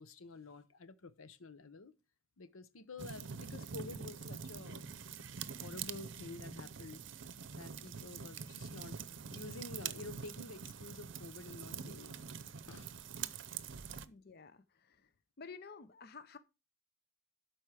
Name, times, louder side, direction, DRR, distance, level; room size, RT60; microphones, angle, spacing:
voice 1, 0.0-1.9 2.4-4.9 5.6-7.0 7.5-12.2 12.7-12.9, left 3 dB, 85° left, 0.8 m, -50 dB
sound 1, 3.0-14.1, right 6 dB, 60° right, 0.6 m, -45 dB
voice 2, 14.0-15.1 15.4-16.4, left 5 dB, 50° left, 0.6 m, -52 dB
12.0 x 4.6 x 4.8 m
head